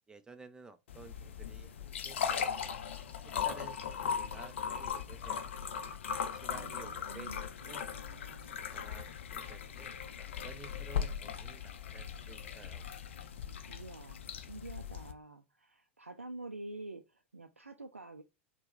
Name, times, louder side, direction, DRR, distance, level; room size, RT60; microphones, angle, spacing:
voice 1, 0.1-2.7 3.2-5.5 6.3-7.9 8.5-9.9 10.2-12.8, right 3 dB, 10° right, 0.6 m, -53 dB
sound 1, 0.9-15.1, left 7 dB, 65° left, 0.5 m, -39 dB
voice 2, 6.5-8.6 13.7-18.2, right 2 dB, 85° right, 0.4 m, -48 dB
4.3 x 2.2 x 3.6 m
figure-of-eight pair, 85°, 7 cm